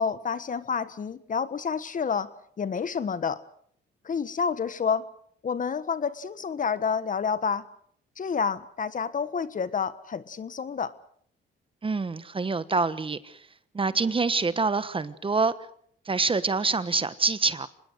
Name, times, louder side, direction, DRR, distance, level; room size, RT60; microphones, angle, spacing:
voice 1, 0.0-2.3 2.6-3.4 4.0-5.1 5.4-7.6 8.2-10.9, left 6 dB, 40° left, 14 dB, 1.4 m, -29 dB
voice 2, 11.8-13.4 13.7-15.5 16.0-17.7, right 4 dB, 25° right, 14 dB, 1.2 m, -26 dB
25.5 x 20.5 x 6.4 m, 0.63 s
cardioid pair, 90°, 20 cm